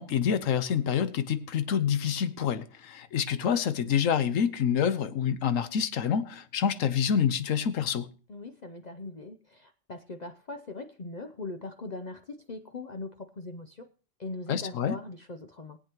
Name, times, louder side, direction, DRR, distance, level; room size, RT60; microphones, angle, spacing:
voice 1, 0.0-8.1 14.5-14.9, left 8 dB, 80° left, 1.2 m, -27 dB
voice 2, 8.3-13.9 14.2-15.8, left 3 dB, 45° left, 0.6 m, -40 dB
21.5 x 8.3 x 2.9 m
omnidirectional pair, 1.4 m